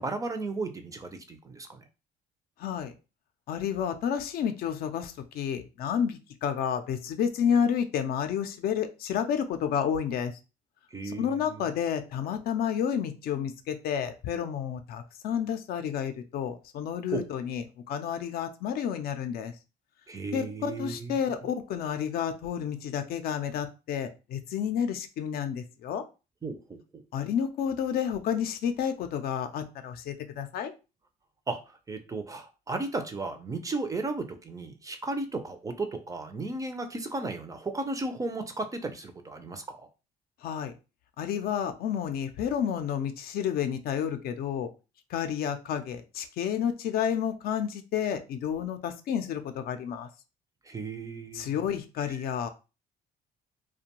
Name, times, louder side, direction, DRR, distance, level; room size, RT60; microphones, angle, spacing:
voice 1, 0.0-1.8 10.9-11.7 17.1-17.3 20.1-21.2 26.4-27.0 31.5-39.9 50.6-51.5 52.1-52.2, right 3 dB, 20° right, 7 dB, 0.4 m, -35 dB
voice 2, 2.6-2.9 3.5-10.3 11.0-19.5 20.3-26.0 27.1-30.7 40.4-40.7 41.2-44.7 45.1-50.1 51.3-52.5, left 8 dB, 65° left, 8 dB, 0.5 m, -30 dB
2.5 x 2.2 x 2.8 m, 0.31 s
cardioid pair, 110°, 17 cm